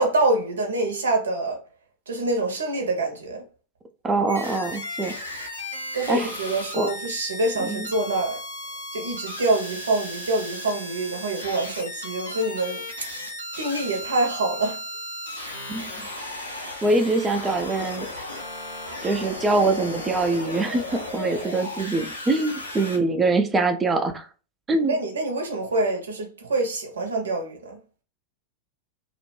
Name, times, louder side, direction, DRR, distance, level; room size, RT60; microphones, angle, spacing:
voice 1, 0.0-1.6 2.1-3.4 5.9-8.4 8.9-12.8 13.6-14.8 24.9-27.8, right 2 dB, 70° right, 0.7 m, -25 dB
voice 2, 4.0-5.1 6.1-6.3 6.7-6.9 7.6-7.9 15.7-16.1 16.8-18.1 19.0-24.3 24.7-24.9, right 2 dB, 15° right, 0.4 m, -24 dB
sound 1, 4.3-23.0, left 1 dB, 90° left, 0.6 m, -35 dB
2.4 x 2.1 x 3.0 m
figure-of-eight pair, 90°, 0 cm